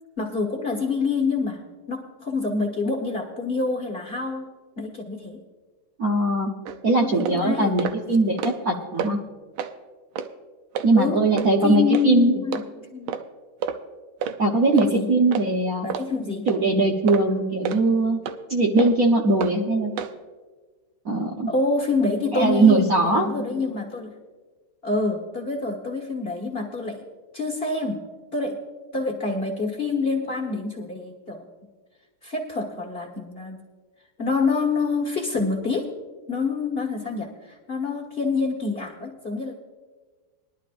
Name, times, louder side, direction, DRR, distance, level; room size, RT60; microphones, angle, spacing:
voice 1, 0.2-5.4 7.0-7.7 10.9-11.2 11.6-13.2 14.7-15.1 15.8-16.5 21.5-24.1 24.8-27.0 27.3-28.0 28.3-28.6 28.9-31.4 32.2-33.6 34.2-35.9 36.3-39.5, left 4 dB, 35° left, -1 dB, 1.3 m, -27 dB
voice 2, 6.0-6.5 6.8-9.2 10.8-12.4 14.4-15.9 16.5-18.2 18.5-19.9 21.0-21.5 22.3-23.3, right 2 dB, 55° right, 0 dB, 1.1 m, -20 dB
sound 1, 6.6-6.8 7.2-7.4 7.8-8.0 8.3-8.7 9.0-9.1 9.6-9.7 10.2-10.3 10.7-10.9 11.4-11.5 11.9-12.1 12.5-12.6 13.1-13.2 13.6-13.8 14.2-14.4 14.8-14.9 15.3-15.5 15.9-16.1 16.5-16.6 17.1-17.2 17.6-17.8 18.2-18.4 18.8-18.9 19.4-19.5 20.0-20.1, right 7 dB, 80° right, 1.5 m, -29 dB
21.0 x 11.5 x 2.5 m, 1.4 s
omnidirectional pair, 2.3 m